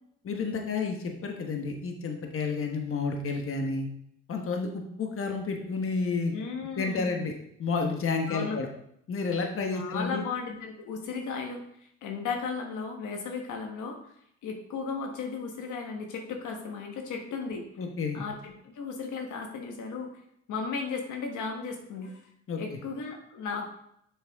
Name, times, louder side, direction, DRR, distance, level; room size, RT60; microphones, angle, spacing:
voice 1, 0.2-3.9 4.3-6.3 6.8-7.3 7.6-8.7 9.1-10.2 17.8-18.2 22.5-22.6, left 4 dB, 45° left, 3 dB, 1.2 m, -30 dB
voice 2, 6.3-7.2 8.3-8.6 9.7-14.1 14.4-17.6 18.1-20.1 20.5-22.3 22.6-23.7, left 5 dB, 80° left, 3 dB, 1.3 m, -35 dB
7.4 x 5.9 x 3.5 m, 0.71 s
cardioid pair, 90°, 30 cm